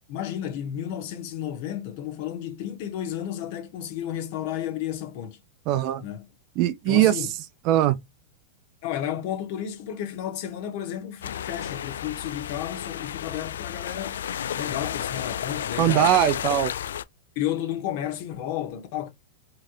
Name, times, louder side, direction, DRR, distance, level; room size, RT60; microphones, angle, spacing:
voice 1, 0.1-5.4 6.0-6.2 6.9-7.3 8.8-14.2 14.5-16.1 16.5-16.6 17.3-19.1, left 11 dB, 55° left, 1.3 m, -32 dB
voice 2, 5.7-6.0 6.6-7.3 7.6-8.0 15.8-16.7, right 13 dB, 45° right, 0.5 m, -21 dB
sound 1, 11.2-17.0, left 9 dB, 85° left, 0.3 m, -32 dB
4.2 x 3.3 x 2.6 m
hypercardioid pair, 130°, 0 cm